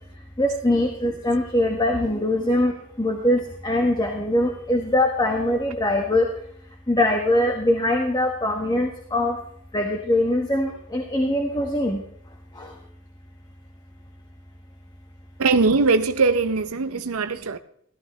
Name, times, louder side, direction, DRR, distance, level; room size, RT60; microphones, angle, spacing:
voice 1, 0.4-2.7 3.0-6.3 6.9-9.4 9.7-12.0 12.6-12.7, left 1 dB, 20° left, 1.2 m, -22 dB
voice 2, 15.4-17.6, right 4 dB, 85° right, 0.6 m, -21 dB
14.5 x 13.5 x 3.1 m
head